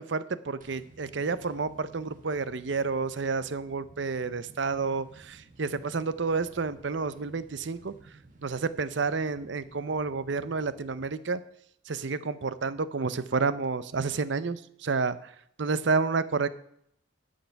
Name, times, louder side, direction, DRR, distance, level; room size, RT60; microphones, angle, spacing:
voice 1, 0.0-7.9 8.4-11.4 11.9-15.3 15.6-16.5, right 4 dB, 65° right, 15 dB, 0.6 m, -30 dB
sound 1, 0.6-11.2, right 2 dB, 40° right, 1.4 m, -54 dB
11.5 x 6.6 x 5.8 m, 0.71 s
head